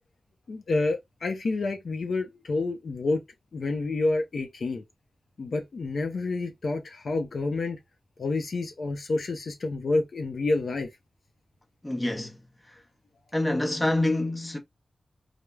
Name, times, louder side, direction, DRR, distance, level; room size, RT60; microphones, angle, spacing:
voice 1, 0.5-3.2 3.5-4.8 5.4-7.8 8.2-10.9, left 3 dB, 65° left, 0.5 m, -28 dB
voice 2, 11.8-12.8 13.3-14.6, left 1 dB, 15° left, 0.7 m, -27 dB
3.2 x 2.0 x 2.2 m
wide cardioid pair, 85°, 0 cm